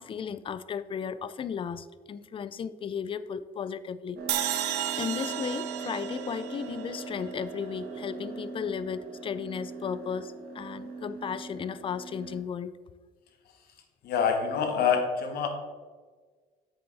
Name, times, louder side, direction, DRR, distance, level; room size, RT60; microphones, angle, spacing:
voice 1, 0.0-4.2 4.5-12.7, left 7 dB, 30° left, 15 dB, 0.4 m, -35 dB
sound 1, 4.2-12.4, right 4 dB, 65° right, 1.5 m, -40 dB
sound 2, 4.3-7.5, right 11 dB, 85° right, 0.7 m, -33 dB
voice 2, 14.0-15.5, left 6 dB, 70° left, 5 dB, 1.4 m, -26 dB
8.2 x 6.9 x 3.4 m, 1.5 s
cardioid pair, 110°, 17 cm